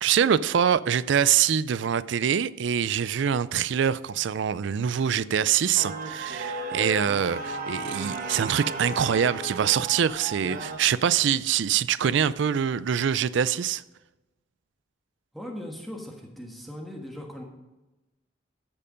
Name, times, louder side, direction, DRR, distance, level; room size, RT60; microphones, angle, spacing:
voice 1, 0.0-13.8, right 8 dB, 65° right, 0.4 m, -24 dB
sound 1, 5.7-10.8, right 2 dB, 45° right, 1.3 m, -34 dB
voice 2, 15.3-17.4, left 1 dB, ahead, 1.3 m, -39 dB
14.0 x 6.7 x 5.1 m
head